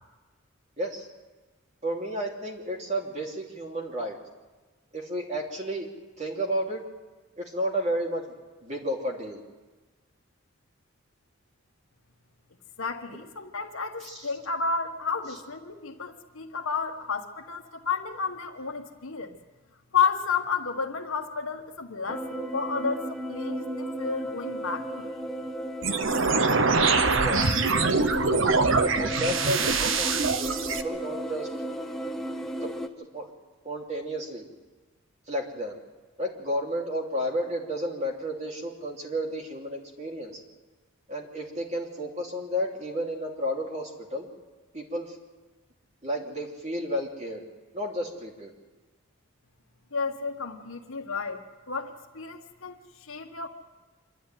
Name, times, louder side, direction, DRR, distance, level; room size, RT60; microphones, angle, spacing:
voice 1, 0.8-1.1 1.8-4.2 4.9-5.9 6.2-6.8 7.4-8.3 8.6-9.4 14.0-14.3 27.2-27.6 28.3-31.5 32.6-32.7 33.1-33.3 33.6-34.4 35.3-35.8 36.2-40.4 41.1-44.3 44.7-45.2 46.0-47.4 47.7-48.5, equal, 30° right, 0 dB, 2.9 m, -32 dB
voice 2, 12.8-19.4 19.9-25.1 49.9-51.4 51.7-53.5, left 5 dB, 70° left, 4 dB, 1.6 m, -31 dB
sound 1, 22.1-32.9, right 1 dB, ahead, 0.9 m, -34 dB
sound 2, 25.8-30.8, right 4 dB, 60° right, 1.0 m, -24 dB
26.0 x 12.0 x 9.2 m, 1.3 s
head